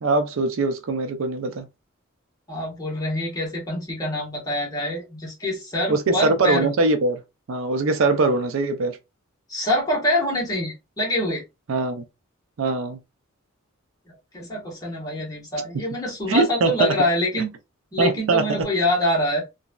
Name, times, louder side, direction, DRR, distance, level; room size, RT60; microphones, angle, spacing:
voice 1, 0.0-1.7 5.9-7.2 7.5-9.0 11.7-12.0 12.6-13.0 16.3-16.9 18.0-18.7, right 3 dB, 70° right, 0.5 m, -22 dB
voice 2, 2.5-6.7 9.5-11.4 14.1-17.5 17.9-19.4, left 1 dB, 15° left, 1.2 m, -25 dB
3.0 x 2.6 x 2.2 m
head